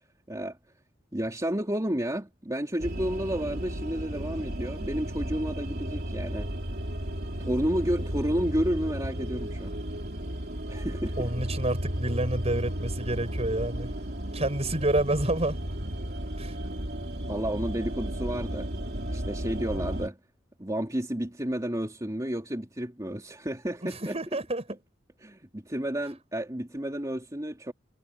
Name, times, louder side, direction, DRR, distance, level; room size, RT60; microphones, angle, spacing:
voice 1, 1.1-6.5 7.4-9.7 10.7-11.3 17.3-18.7 19.1-20.2 20.6-24.2 25.2-27.7, equal, 20° right, 3.1 m, -31 dB
sound 1, 2.8-20.1, equal, 55° right, 4.0 m, -34 dB
voice 2, 11.2-13.9 14.3-15.6 16.4-16.5 24.1-24.6, right 1 dB, 35° right, 6.1 m, -28 dB
head